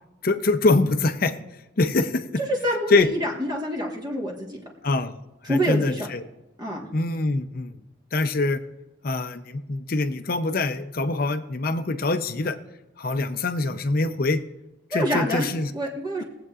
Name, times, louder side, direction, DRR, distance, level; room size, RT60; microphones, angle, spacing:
voice 1, 0.2-1.3 1.8-2.2 2.9-3.1 4.8-5.1 5.4-6.2 6.9-7.7 8.1-8.6 9.0-12.6 13.0-14.4 14.9-15.7, left 2 dB, 50° left, 9 dB, 0.7 m, -24 dB
voice 2, 2.6-4.6 5.4-6.1 6.6-6.9 14.9-15.5 15.7-16.2, equal, 20° right, -1 dB, 1.4 m, -26 dB
21.5 x 7.9 x 2.4 m, 0.96 s
head